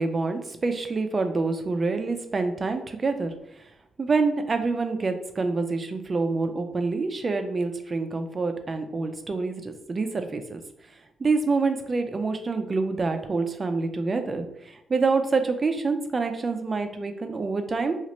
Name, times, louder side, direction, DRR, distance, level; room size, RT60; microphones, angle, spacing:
voice 1, 0.0-3.3 4.0-10.6 11.2-18.0, right 3 dB, 35° right, 7 dB, 0.4 m, -26 dB
2.9 x 2.4 x 2.9 m, 0.79 s
supercardioid pair, 70°, 0 cm